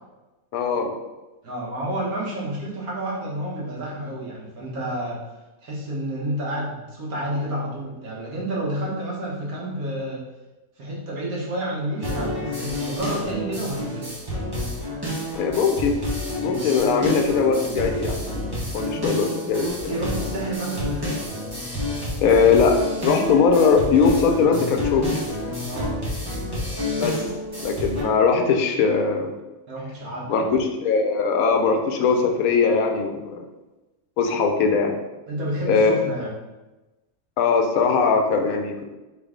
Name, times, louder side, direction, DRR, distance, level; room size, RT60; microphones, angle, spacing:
voice 1, 0.5-0.9 15.4-16.0 16.4-18.3 18.7-20.0 22.2-22.8 23.0-25.2 27.0-27.2 27.6-29.3 30.3-33.4 34.2-34.9 35.7-36.0 37.4-38.8, left 5 dB, 75° left, 4 dB, 1.0 m, -20 dB
voice 2, 1.4-5.2 5.6-10.2 10.8-14.1 16.4-16.7 19.9-21.2 25.7-26.0 29.7-30.5 35.3-36.3, right 1 dB, 80° right, -5 dB, 1.7 m, -30 dB
sound 1, 12.0-28.0, left 1 dB, 15° right, 1.3 m, -29 dB
3.8 x 3.5 x 3.6 m, 1.1 s
omnidirectional pair, 1.5 m